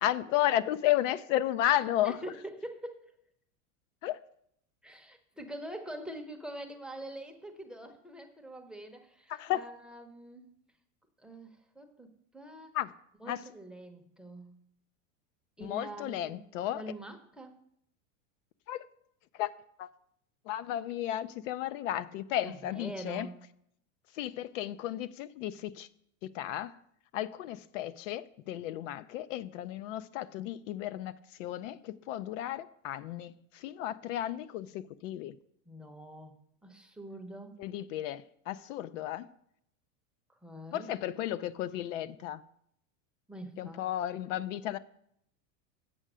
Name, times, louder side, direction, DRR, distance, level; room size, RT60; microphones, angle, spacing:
voice 1, 0.0-2.2 4.0-4.2 9.3-9.6 12.7-12.9 13.3-13.4 15.6-16.8 18.7-18.8 19.4-19.5 19.8-19.9 20.5-23.3 24.1-25.9 26.2-26.8 27.1-35.4 37.6-39.3 40.7-42.4 43.6-44.8, left 12 dB, 70° left, 0.5 m, -33 dB
voice 2, 1.6-3.0 4.8-10.5 11.2-12.8 13.2-14.6 15.6-16.5 16.7-17.6 22.4-23.4 35.7-36.3 36.6-37.6 40.3-40.9 43.3-43.8 44.1-44.2, right 1 dB, ahead, 0.7 m, -45 dB
7.9 x 5.6 x 6.1 m
supercardioid pair, 145°, 39 cm